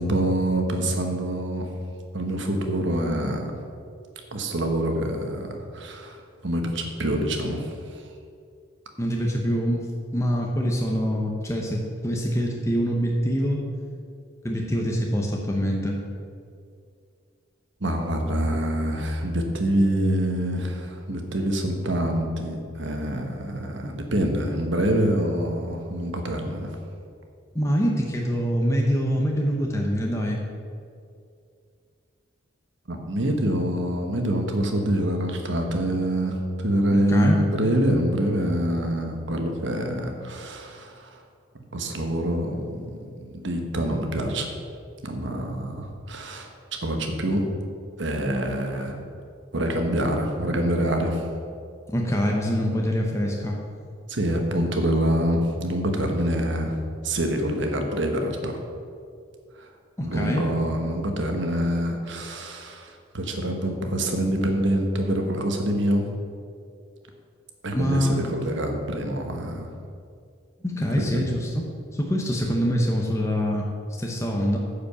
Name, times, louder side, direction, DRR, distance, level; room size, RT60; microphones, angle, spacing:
voice 1, 0.0-1.7 2.1-3.5 4.3-6.2 6.4-8.0 17.8-26.7 32.9-41.2 41.7-44.5 45.0-46.5 46.8-47.4 48.0-49.0 49.5-51.2 54.1-56.7 57.0-58.6 59.6-59.7 60.0-66.1 67.6-69.7 71.0-71.3, right 1 dB, 60° right, 3 dB, 1.3 m, -26 dB
voice 2, 9.0-9.9 10.1-13.6 14.4-16.0 27.5-30.4 36.9-37.4 51.9-53.6 60.0-60.4 67.7-68.3 70.6-71.7 71.9-73.7 74.0-74.6, equal, 15° left, -1 dB, 0.8 m, -25 dB
9.5 x 5.2 x 6.9 m, 2.3 s
head